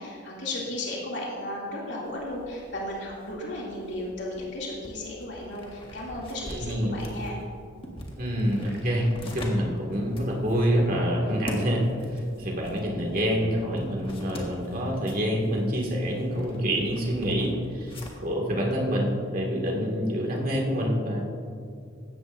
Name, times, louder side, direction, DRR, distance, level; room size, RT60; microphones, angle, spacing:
voice 1, 0.0-7.4, left 1 dB, 60° left, -4 dB, 2.7 m, -35 dB
sound 1, 2.1-18.4, equal, 25° left, 1.6 m, -44 dB
voice 2, 6.5-6.9 8.2-11.8 12.1-18.0 18.2-21.2, equal, 45° right, -1 dB, 2.1 m, -27 dB
16.0 x 13.0 x 2.6 m, 2.4 s
head